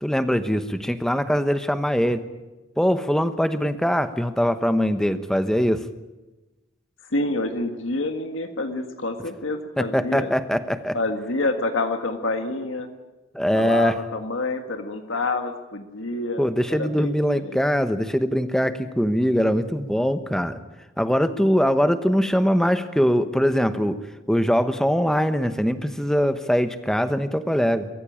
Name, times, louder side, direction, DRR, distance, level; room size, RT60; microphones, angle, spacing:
voice 1, 0.0-2.2 2.8-5.8 9.8-11.0 13.3-14.0 16.4-20.6 21.0-24.0 24.3-27.9, equal, 5° left, 10 dB, 1.0 m, -22 dB
voice 2, 7.1-10.3 10.9-12.9 13.5-17.6, left 2 dB, 85° left, 6 dB, 1.8 m, -28 dB
23.0 x 14.5 x 8.8 m, 1.1 s
head